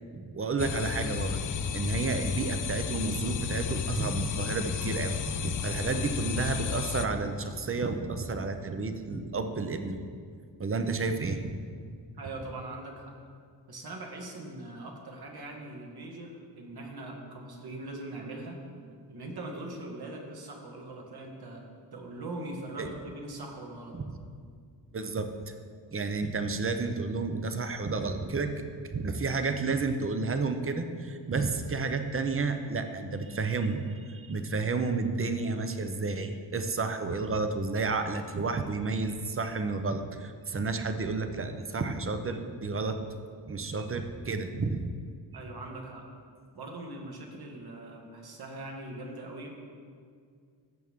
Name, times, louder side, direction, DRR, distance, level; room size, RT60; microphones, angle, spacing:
voice 1, 0.1-1.4 1.7-10.0 10.6-11.5 22.8-22.9 23.9-24.0 24.9-25.5 25.9-28.5 28.8-43.0 43.5-44.9, right 3 dB, 30° right, 7 dB, 0.8 m, -31 dB
sound 1, 0.6-7.1, left 7 dB, 45° left, 0.6 m, -33 dB
voice 2, 12.2-13.1 13.7-18.6 19.1-24.0 45.3-46.1 46.5-49.5, right 2 dB, 60° right, 0 dB, 1.9 m, -41 dB
15.5 x 6.3 x 3.7 m, 2.1 s
cardioid pair, 85°, 43 cm